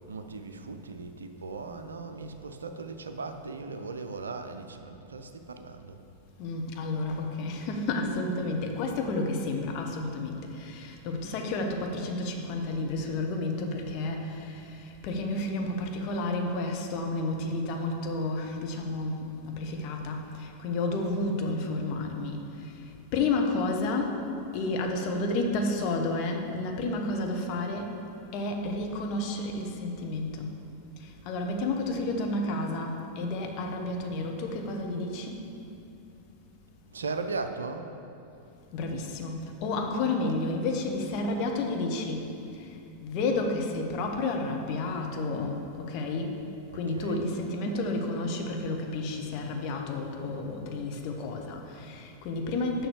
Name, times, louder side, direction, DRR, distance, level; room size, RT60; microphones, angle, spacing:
voice 1, 0.1-6.0 36.9-37.9 46.7-47.3, right 4 dB, 70° right, 7 dB, 0.5 m, -38 dB
voice 2, 6.4-22.7 23.1-24.2 24.5-27.9 28.3-30.5 31.0-35.4 38.7-42.3 43.0-46.4 46.7-52.9, left 2 dB, 40° left, 2 dB, 1.1 m, -31 dB
6.9 x 5.9 x 6.8 m, 2.7 s
figure-of-eight pair, 90°, 0 cm